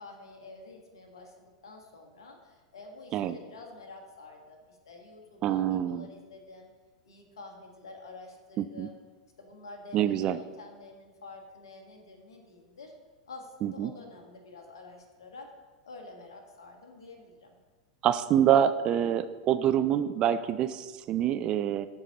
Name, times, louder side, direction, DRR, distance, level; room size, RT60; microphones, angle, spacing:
voice 1, 0.0-6.7 7.0-9.0 9.4-12.9 13.3-15.5 15.8-17.6, left 3 dB, 65° left, 2 dB, 1.4 m, -48 dB
voice 2, 5.4-6.0 8.6-8.9 9.9-10.4 13.6-13.9 18.0-21.9, right 10 dB, 35° right, 12 dB, 0.3 m, -26 dB
12.5 x 4.7 x 2.9 m, 1.4 s
figure-of-eight pair, 90°, 3 cm